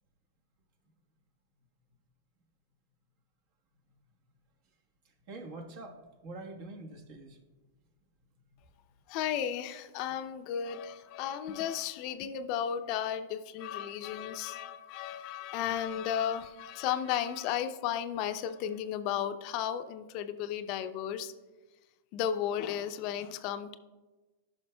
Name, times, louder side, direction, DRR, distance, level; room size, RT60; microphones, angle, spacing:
voice 1, 5.3-7.4, right 2 dB, 55° right, 3 dB, 1.3 m, -45 dB
voice 2, 9.1-21.3 22.1-23.8, left 9 dB, 45° left, 10 dB, 0.5 m, -34 dB
14.0 x 5.7 x 2.2 m, 1.2 s
hypercardioid pair, 125°, 0 cm